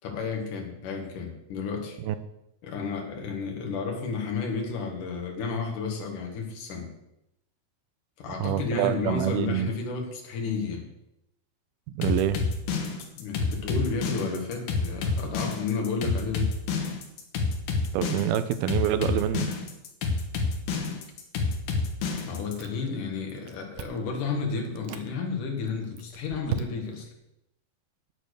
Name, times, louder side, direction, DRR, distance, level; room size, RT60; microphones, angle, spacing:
voice 1, 0.0-2.0 2.6-6.9 8.2-10.9 13.1-16.5 22.3-27.1, left 4 dB, 60° left, 1 dB, 3.4 m, -32 dB
voice 2, 8.4-9.7 11.9-12.4 17.9-19.5, right 10 dB, 90° right, 12 dB, 2.6 m, -26 dB
sound 1, 12.0-22.6, left 4 dB, 75° left, 3.3 m, -28 dB
Chewing mastication, 22.1-23.0 23.3-24.1 24.7-25.1 25.6-27.1, right 9 dB, 75° right, 2.3 m, -37 dB
9.1 x 8.7 x 6.7 m, 0.85 s
omnidirectional pair, 4.4 m